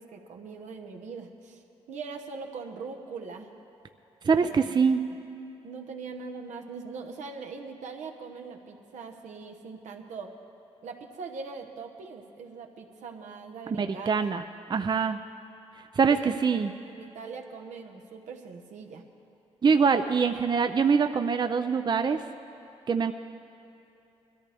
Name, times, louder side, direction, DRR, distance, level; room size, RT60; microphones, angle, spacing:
voice 1, 0.0-1.6 1.9-3.5 4.3-4.8 5.6-10.3 10.8-14.3 16.0-16.4 16.8-19.0, right 4 dB, 85° right, 3 dB, 1.2 m, -41 dB
voice 2, 4.2-5.0 13.8-14.4 14.7-15.2 16.0-16.7 19.6-22.2 22.9-23.1, right 5 dB, 40° right, 8 dB, 0.5 m, -24 dB
21.0 x 14.0 x 3.5 m, 2.9 s
cardioid pair, 75°, 12 cm